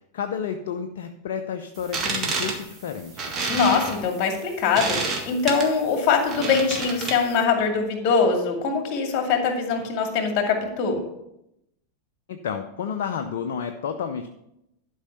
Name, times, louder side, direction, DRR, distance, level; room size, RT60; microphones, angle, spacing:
voice 1, 0.1-3.3 12.3-14.3, left 7 dB, 55° left, 6 dB, 0.6 m, -31 dB
sound 1, 1.8-7.4, right 3 dB, 25° right, 1.9 m, -30 dB
voice 2, 3.5-11.0, left 5 dB, 40° left, 3 dB, 2.3 m, -23 dB
11.5 x 5.5 x 5.6 m, 0.82 s
figure-of-eight pair, 90°, 0 cm